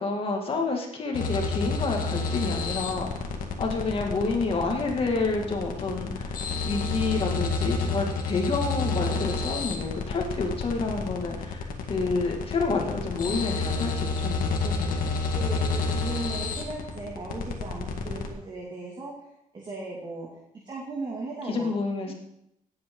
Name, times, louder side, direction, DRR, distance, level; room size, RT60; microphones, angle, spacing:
voice 1, 0.0-3.1 3.6-15.1 21.5-22.1, left 3 dB, 40° left, 1 dB, 2.2 m, -29 dB
sound 1, 1.1-18.3, left 4 dB, 75° left, 1.8 m, -30 dB
voice 2, 15.3-19.1 19.5-20.3 20.5-21.7 22.1-22.2, right 3 dB, 30° right, -3 dB, 2.4 m, -37 dB
18.0 x 8.7 x 3.9 m, 0.79 s
wide cardioid pair, 165°, 14 cm